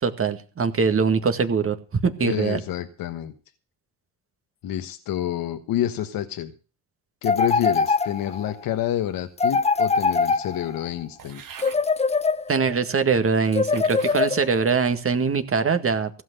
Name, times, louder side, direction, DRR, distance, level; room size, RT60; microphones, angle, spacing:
voice 1, 0.0-2.6 12.5-16.1, right 5 dB, 40° right, 7 dB, 1.9 m, -22 dB
voice 2, 2.2-3.3 4.6-6.5 7.2-11.4, left 11 dB, 70° left, 8 dB, 1.3 m, -28 dB
sound 1, 7.2-8.5 9.4-10.9 11.6-12.8 13.5-14.7, left 4 dB, 20° left, 0.7 m, -23 dB
sound 2, 11.2-11.8 12.6-12.7 13.4-14.2 14.8-15.2, right 7 dB, 65° right, 2.2 m, -44 dB
15.5 x 6.3 x 8.3 m, 0.37 s
supercardioid pair, 70°, 36 cm